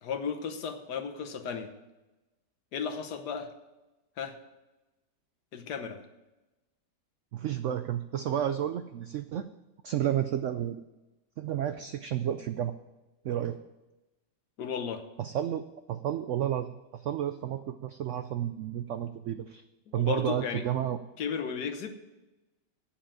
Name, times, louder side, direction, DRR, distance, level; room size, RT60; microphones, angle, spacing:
voice 1, 0.0-1.7 2.7-3.5 4.2-4.3 5.5-6.0 14.6-15.0 19.9-20.6 21.2-21.9, left 6 dB, 70° left, 6 dB, 1.5 m, -34 dB
voice 2, 7.3-9.5 9.8-10.8 11.4-12.8 13.2-13.6 15.2-19.6 19.9-21.0, right 10 dB, 85° right, 10 dB, 0.6 m, -31 dB
8.8 x 7.5 x 8.7 m, 1.0 s
omnidirectional pair, 1.8 m